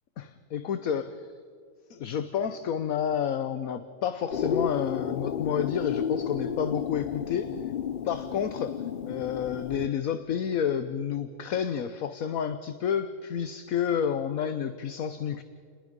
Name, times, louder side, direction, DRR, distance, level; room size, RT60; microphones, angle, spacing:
voice 1, 0.2-1.3 1.9-7.5 8.0-8.7 9.1-15.4, left 8 dB, 65° left, 11 dB, 1.3 m, -30 dB
sound 1, 4.3-9.9, left 8 dB, 90° left, 0.4 m, -32 dB
29.5 x 20.5 x 5.3 m, 2.2 s
omnidirectional pair, 1.7 m